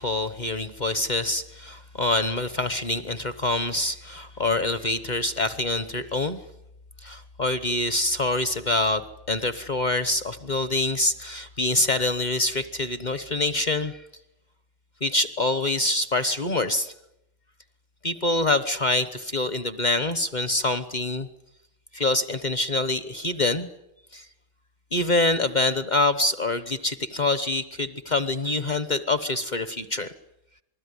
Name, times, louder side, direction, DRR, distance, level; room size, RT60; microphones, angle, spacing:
voice 1, 0.0-6.4 7.0-9.0 9.3-14.0 15.0-16.9 18.0-21.3 21.9-23.7 24.1-24.2 24.9-30.1, left 2 dB, 30° left, 12 dB, 0.8 m, -25 dB
27.0 x 20.5 x 9.7 m, 0.86 s
omnidirectional pair, 2.1 m